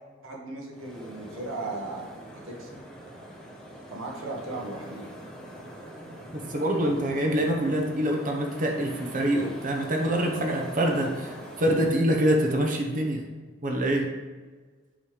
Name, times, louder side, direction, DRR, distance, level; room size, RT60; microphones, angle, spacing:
voice 1, 0.2-2.0 2.4-2.7 3.9-5.1, right 2 dB, 75° right, -1 dB, 1.4 m, -36 dB
sound 1, 0.7-11.9, equal, 5° left, 0.9 m, -44 dB
voice 2, 6.3-13.2 13.6-14.1, right 1 dB, 40° right, 1 dB, 0.9 m, -25 dB
7.1 x 3.3 x 5.0 m, 1.4 s
head